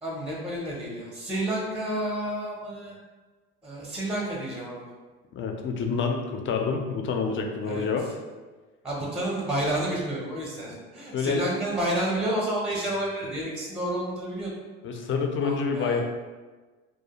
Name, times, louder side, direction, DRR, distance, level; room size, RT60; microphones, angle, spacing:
voice 1, 0.0-3.0 3.6-4.8 7.6-7.9 8.8-14.5 15.4-16.0, right 1 dB, 5° right, -4 dB, 0.5 m, -30 dB
voice 2, 5.3-8.1 11.1-11.5 14.8-16.0, left 5 dB, 45° left, 3 dB, 0.4 m, -27 dB
2.4 x 2.2 x 2.7 m, 1.3 s
supercardioid pair, 85°, 29 cm